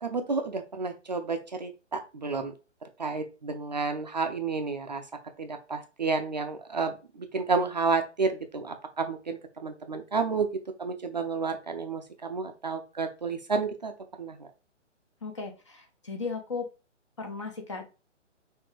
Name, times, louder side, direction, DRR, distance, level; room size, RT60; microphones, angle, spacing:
voice 1, 0.0-2.5 3.0-5.0 5.4-10.5 10.8-13.9 14.2-14.5, right 4 dB, 35° right, 6 dB, 0.5 m, -31 dB
voice 2, 15.2-16.7 17.2-17.8, left 4 dB, 25° left, 4 dB, 0.6 m, -36 dB
6.0 x 2.7 x 3.2 m, 0.31 s
figure-of-eight pair, 135°, 37 cm